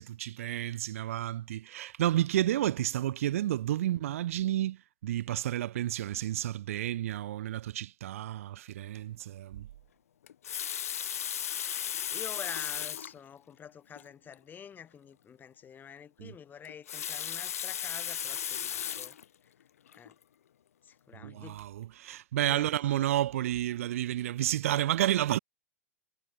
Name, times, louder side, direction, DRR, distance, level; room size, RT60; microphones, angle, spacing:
voice 1, 0.0-9.7 16.2-16.3 21.1-25.4, right 13 dB, 60° right, 1.3 m, -31 dB
Water tap faucet, 10.3-13.2 14.0-14.1 14.3-14.4 16.6-19.2 19.9-20.1, left 9 dB, 65° left, 1.9 m, -35 dB
voice 2, 12.1-19.2 20.0-20.1 20.8-21.6 22.4-23.1, left 8 dB, 20° left, 3.4 m, -47 dB
figure-of-eight pair, 95°, 9 cm